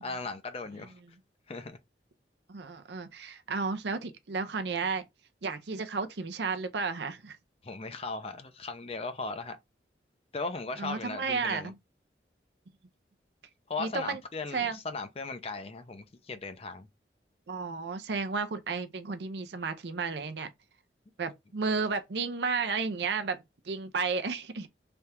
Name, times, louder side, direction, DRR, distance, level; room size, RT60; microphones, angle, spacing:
voice 1, 0.0-0.9 1.5-1.8 7.6-9.6 10.3-11.7 13.7-16.9, left 3 dB, 35° left, 0.5 m, -37 dB
voice 2, 0.8-1.2 2.5-5.1 5.4-7.4 10.8-11.7 13.8-14.2 14.5-14.8 17.5-20.5 21.2-24.7, right 4 dB, 70° right, 0.6 m, -33 dB
3.4 x 2.3 x 4.2 m
head